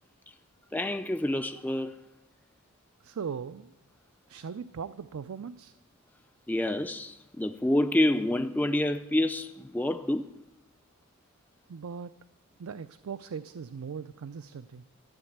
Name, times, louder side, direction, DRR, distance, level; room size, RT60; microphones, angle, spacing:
voice 1, 0.7-2.0 6.5-10.3, left 1 dB, 10° left, 0.3 m, -28 dB
voice 2, 3.0-3.7 4.3-5.7 11.7-12.1 12.6-14.8, right 6 dB, 75° right, 0.4 m, -39 dB
13.0 x 7.9 x 7.9 m
head